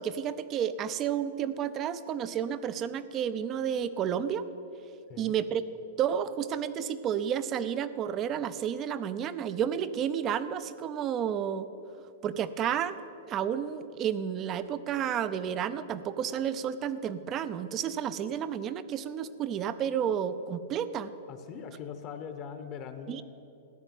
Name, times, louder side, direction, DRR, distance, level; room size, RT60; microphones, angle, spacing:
voice 1, 0.0-4.4 5.2-5.6 6.0-11.7 12.2-13.0 13.3-21.1 23.1-23.2, right 9 dB, 25° right, 14 dB, 0.6 m, -31 dB
voice 2, 21.3-23.2, left 7 dB, 30° left, 8 dB, 1.0 m, -41 dB
14.5 x 10.0 x 9.0 m, 2.9 s
hypercardioid pair, 155°, 0 cm